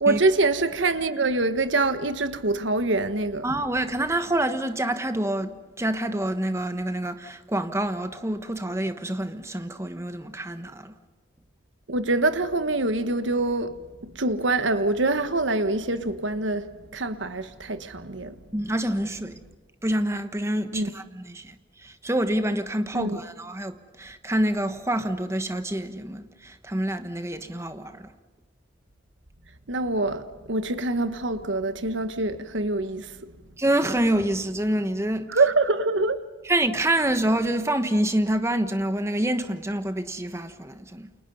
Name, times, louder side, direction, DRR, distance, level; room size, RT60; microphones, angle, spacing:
voice 1, 0.0-3.4 11.9-13.8 14.1-16.7 16.9-18.3 20.7-20.9 22.9-23.2 29.7-33.1 35.3-36.2, right 2 dB, 85° right, 1.4 m, -25 dB
voice 2, 3.4-10.9 18.5-19.3 19.8-21.5 21.8-28.1 33.6-35.3 36.4-41.1, right 1 dB, 15° right, 1.2 m, -27 dB
29.5 x 28.5 x 5.6 m
head